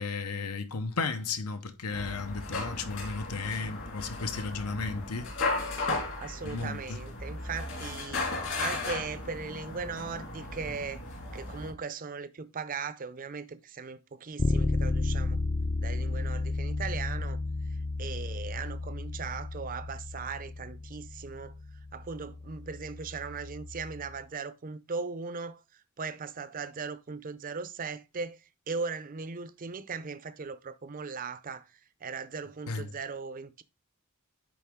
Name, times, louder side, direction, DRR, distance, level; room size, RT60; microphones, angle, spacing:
voice 1, 0.0-5.3 6.4-7.0 32.7-32.9, left 4 dB, 85° left, 1.0 m, -34 dB
sound 1, 1.9-11.7, left 3 dB, 60° left, 2.8 m, -36 dB
voice 2, 6.2-11.0 11.3-15.4 15.8-17.4 18.0-21.5 21.9-28.4 28.7-31.6 32.0-33.6, right 5 dB, 40° right, 0.5 m, -38 dB
Bass guitar, 14.4-24.2, left 2 dB, 25° left, 0.4 m, -33 dB
9.9 x 3.9 x 3.6 m
head